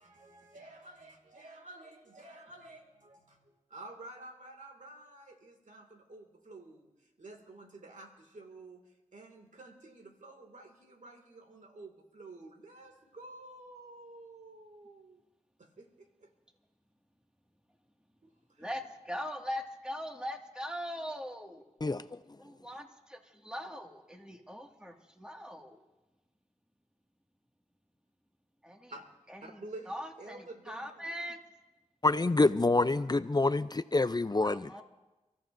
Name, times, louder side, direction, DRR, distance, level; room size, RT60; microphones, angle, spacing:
voice 1, 0.0-6.9 7.2-15.2 15.6-16.3 18.2-18.7 28.9-29.1 29.4-31.1, right 2 dB, 80° right, 2 dB, 2.2 m, -51 dB
voice 2, 18.6-21.7 22.4-25.8 28.6-28.9 29.3-31.4 34.4-34.8, equal, 5° right, 1 dB, 2.0 m, -41 dB
voice 3, 32.0-34.7, left 2 dB, 35° left, 13 dB, 0.5 m, -27 dB
30.0 x 14.5 x 2.6 m, 1.1 s
wide cardioid pair, 45°, 13 cm